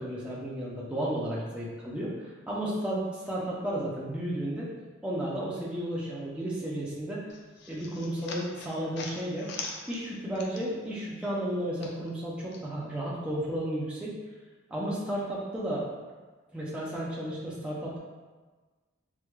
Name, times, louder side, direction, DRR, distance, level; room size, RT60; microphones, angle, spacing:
voice 1, 0.0-4.7 5.0-7.2 7.7-9.5 9.9-14.1 14.7-15.8 16.5-18.0, right 1 dB, 5° right, -6 dB, 0.5 m, -33 dB
sound 1, 7.3-10.9 11.2-12.6, left 4 dB, 55° left, 0.4 m, -42 dB
4.5 x 2.2 x 2.3 m, 1.3 s
head